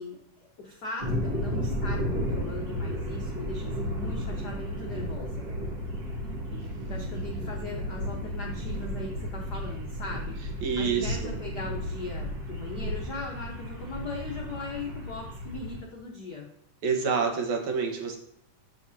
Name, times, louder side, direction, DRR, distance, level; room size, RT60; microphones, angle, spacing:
voice 1, 0.0-5.5 6.9-16.5, left 3 dB, 80° left, -1 dB, 0.9 m, -39 dB
sound 1, 1.0-15.8, equal, 40° right, 1.4 m, -33 dB
voice 2, 6.5-7.5 10.6-11.3 16.8-18.2, right 5 dB, 70° right, 3 dB, 2.5 m, -29 dB
14.0 x 4.7 x 2.8 m, 0.74 s
omnidirectional pair, 3.6 m